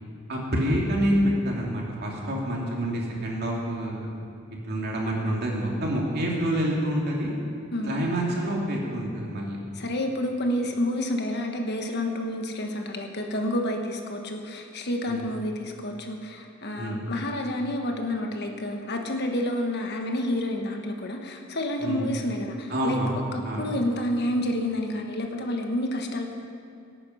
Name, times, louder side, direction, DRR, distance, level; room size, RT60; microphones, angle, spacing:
voice 1, 0.3-4.1 4.7-7.3 7.8-9.6 15.1-15.2 16.8-17.0 21.8-22.1 22.7-23.7, equal, 55° right, -2 dB, 2.6 m, -27 dB
voice 2, 7.7-8.1 9.7-23.0 23.3-26.3, left 1 dB, 55° left, 3 dB, 1.4 m, -29 dB
18.5 x 9.0 x 5.7 m, 2.5 s
head